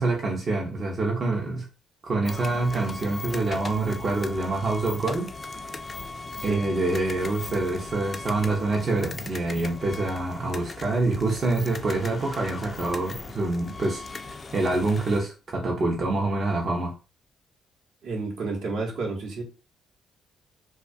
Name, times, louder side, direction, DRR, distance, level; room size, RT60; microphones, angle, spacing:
voice 1, 0.0-1.7 2.0-5.3 6.4-16.9, right 2 dB, 45° right, 0.6 m, -26 dB
sound 1, 2.3-15.2, left 3 dB, 40° left, 0.3 m, -38 dB
voice 2, 18.0-19.4, right 3 dB, 70° right, 0.9 m, -30 dB
2.2 x 2.2 x 2.5 m
hypercardioid pair, 50°, 0 cm